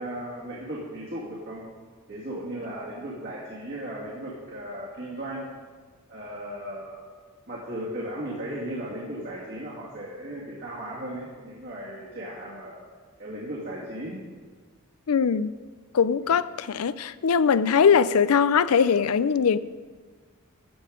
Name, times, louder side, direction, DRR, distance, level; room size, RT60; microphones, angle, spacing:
voice 1, 0.0-1.7 2.1-5.5 6.1-7.0 7.5-12.8 13.2-14.2 16.2-16.4, right 1 dB, 55° right, -6 dB, 2.3 m, -36 dB
voice 2, 15.1-15.5 15.9-19.6, left 6 dB, 85° left, 16 dB, 0.5 m, -21 dB
14.5 x 7.8 x 5.1 m, 1.5 s
head